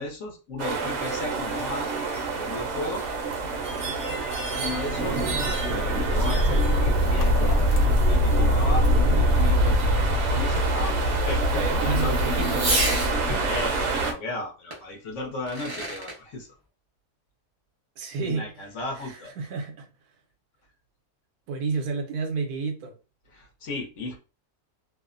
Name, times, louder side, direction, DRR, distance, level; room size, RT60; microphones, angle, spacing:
voice 1, 0.0-3.0 4.6-5.2 5.7-7.6 8.1-12.4 13.3-16.5 18.2-19.3 23.3-24.2, left 2 dB, 60° left, 0.9 m, -35 dB
sound 1, 0.6-14.1, right 1 dB, 60° right, 0.8 m, -24 dB
Fireworks, 4.6-13.2 14.7-14.8 15.3-16.2, right 1 dB, 25° right, 0.5 m, -35 dB
sound 2, 7.1-10.4, right 1 dB, 85° left, 1.1 m, -36 dB
voice 2, 11.3-12.7 18.0-18.6 18.9-19.9 21.5-23.0, right 4 dB, 80° right, 1.1 m, -31 dB
2.7 x 2.0 x 2.4 m
omnidirectional pair, 1.6 m